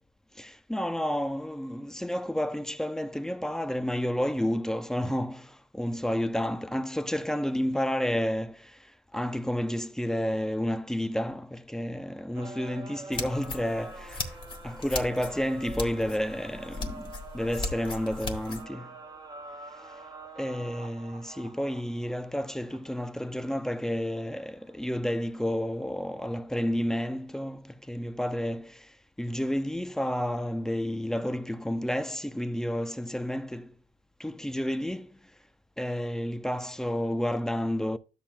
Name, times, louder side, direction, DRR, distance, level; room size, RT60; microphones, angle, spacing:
voice 1, 0.3-14.3 14.6-18.9 20.4-33.7 34.2-35.2 35.8-38.0, equal, 5° left, 0.5 m, -31 dB
sound 1, 12.3-25.8, right 3 dB, 25° right, 1.0 m, -47 dB
sound 2, 13.1-18.6, left 3 dB, 30° left, 1.5 m, -38 dB
12.0 x 7.2 x 2.2 m
cardioid pair, 110°, 17 cm